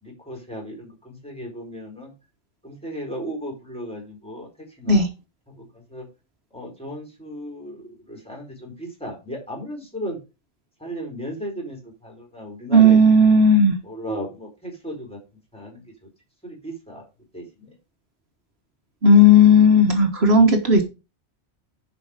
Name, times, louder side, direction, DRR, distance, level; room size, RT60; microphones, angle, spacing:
voice 1, 0.0-2.1 2.6-4.5 4.8-5.0 5.6-5.7 5.9-6.1 6.5-10.2 10.8-13.0 13.8-15.2 15.5-15.8 16.4-17.0 17.3-17.7, equal, 5° left, 0 dB, 4.3 m, -35 dB
voice 2, 12.7-13.7 19.0-20.8, left 1 dB, 65° right, 4 dB, 1.7 m, -14 dB
11.0 x 4.9 x 4.9 m, 0.28 s
omnidirectional pair, 1.1 m